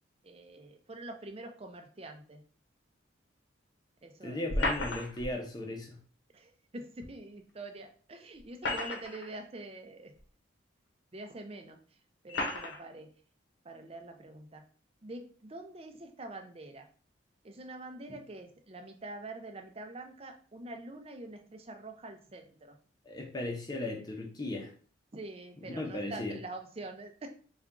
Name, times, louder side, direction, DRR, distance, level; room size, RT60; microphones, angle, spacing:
voice 1, 0.2-2.4 4.0-4.5 6.3-10.1 11.1-11.8 12.2-13.1 13.6-14.6 15.0-16.9 17.4-22.8 25.1-27.3, right 2 dB, 30° right, 4 dB, 0.5 m, -45 dB
voice 2, 4.2-6.0 23.0-24.7 25.8-26.4, left 1 dB, 20° left, 2 dB, 0.7 m, -37 dB
sound 1, 4.5-5.3 7.0-7.1 8.4-9.3 10.2-10.3 11.2-11.3 12.3-12.8, left 2 dB, 60° left, 0.9 m, -33 dB
4.2 x 2.4 x 3.6 m, 0.42 s
head